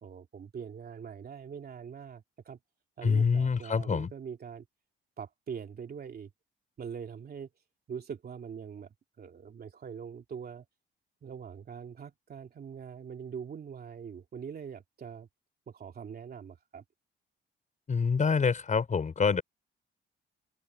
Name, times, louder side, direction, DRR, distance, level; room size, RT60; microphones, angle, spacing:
voice 1, 0.0-2.6 3.0-4.6 5.2-6.3 6.8-7.5 7.9-10.6 11.2-15.3 15.7-16.8, right 7 dB, 50° right, 2.9 m, -43 dB
voice 2, 3.0-4.1 17.9-19.4, left 5 dB, 40° left, 4.5 m, -26 dB
cardioid pair, 90°, 20 cm